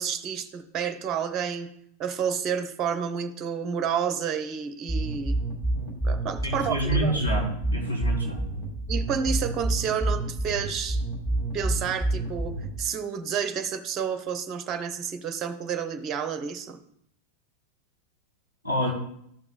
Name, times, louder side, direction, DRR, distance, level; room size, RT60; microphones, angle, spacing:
voice 1, 0.0-1.7 2.0-5.4 6.0-7.2 8.9-11.0 11.5-16.8, right 7 dB, 30° right, 8 dB, 0.7 m, -30 dB
sound 1, 4.9-12.9, right 2 dB, 15° left, 2.5 m, -28 dB
voice 2, 6.4-8.4 18.6-18.9, equal, 80° left, -4 dB, 3.1 m, -27 dB
13.5 x 5.9 x 2.4 m, 0.71 s
figure-of-eight pair, 90°, 0 cm